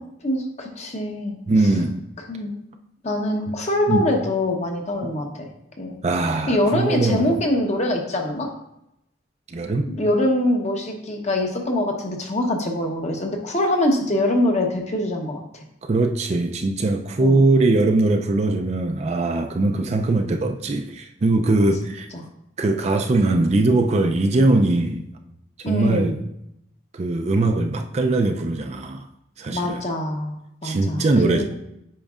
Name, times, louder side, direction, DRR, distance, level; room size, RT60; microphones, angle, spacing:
voice 1, 0.2-1.7 2.3-2.5 3.0-5.5 5.8-6.0 6.5-8.5 9.9-15.4 17.2-17.4 22.1-22.2 25.6-26.1 29.5-31.4, left 1 dB, 35° left, 2 dB, 0.9 m, -24 dB
voice 2, 1.5-1.9 3.9-4.0 6.0-7.4 9.5-9.8 15.8-22.1 22.6-25.0 25.7-26.2 26.9-29.1 29.4-29.8 30.6-31.4, right 2 dB, 35° right, 5 dB, 0.4 m, -21 dB
8.6 x 5.2 x 2.4 m, 0.81 s
head